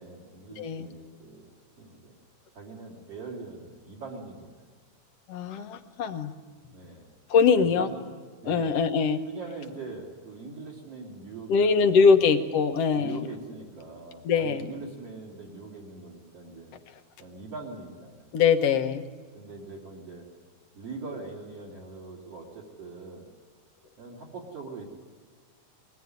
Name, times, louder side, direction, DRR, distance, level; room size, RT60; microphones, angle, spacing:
voice 1, 0.0-1.5 1.8-2.1 2.5-4.7 6.7-7.1 7.5-8.1 8.4-8.8 9.2-12.2 12.9-16.7 17.2-18.4 19.3-20.3 20.7-23.3 24.0-24.9, right 3 dB, 50° right, 0 dB, 4.1 m, -42 dB
voice 2, 0.6-0.9 5.3-6.3 7.3-7.9 8.5-9.2 11.5-13.3 14.3-14.7 18.3-19.0, left 5 dB, 60° left, 7 dB, 2.0 m, -22 dB
22.5 x 18.5 x 9.5 m, 1.6 s
omnidirectional pair, 3.5 m